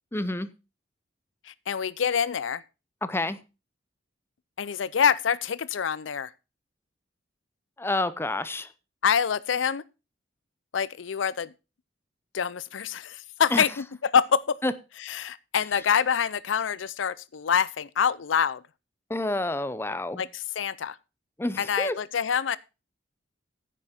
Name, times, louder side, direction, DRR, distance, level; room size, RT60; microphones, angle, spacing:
voice 1, 0.1-0.5 3.0-3.4 7.8-8.7 13.5-13.6 14.6-14.7 19.1-20.2 21.4-22.0, left 2 dB, 15° left, 0.6 m, -28 dB
voice 2, 1.4-2.6 4.6-6.3 9.0-9.8 10.7-11.5 12.3-13.8 14.1-14.6 15.0-18.6 20.2-21.0 21.6-22.6, left 7 dB, 90° left, 0.5 m, -26 dB
10.0 x 8.9 x 4.3 m
head